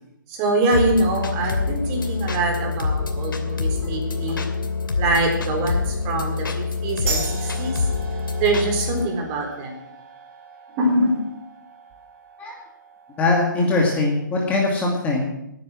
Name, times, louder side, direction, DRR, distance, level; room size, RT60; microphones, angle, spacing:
voice 1, 0.3-4.5 5.0-7.9 8.4-9.9 10.7-11.2, right 2 dB, 25° right, 2 dB, 4.0 m, -24 dB
sound 1, 0.7-9.1, left 4 dB, 80° left, 2.8 m, -26 dB
sound 2, 7.1-14.2, right 5 dB, 40° right, 4.5 m, -37 dB
voice 2, 13.2-15.3, left 2 dB, 15° left, -1 dB, 2.3 m, -21 dB
19.5 x 9.6 x 6.2 m, 0.83 s
hypercardioid pair, 150°, 11 cm